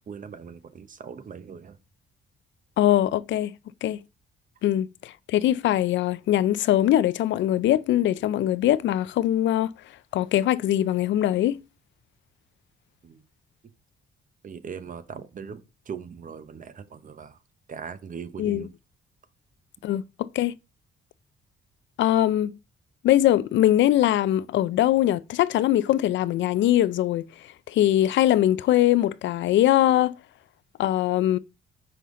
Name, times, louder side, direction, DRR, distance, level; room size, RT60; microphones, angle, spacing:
voice 1, 0.1-1.8 13.0-13.2 14.4-17.4 17.7-18.7, right 6 dB, 40° right, 0.8 m, -40 dB
voice 2, 2.8-3.5 3.8-4.0 4.6-9.7 10.1-11.6 18.4-18.6 19.8-20.5 22.0-22.5 23.0-27.3 27.7-30.1 30.8-31.4, left 13 dB, 70° left, 0.4 m, -22 dB
5.7 x 5.4 x 3.7 m
cardioid pair, 90°, 20 cm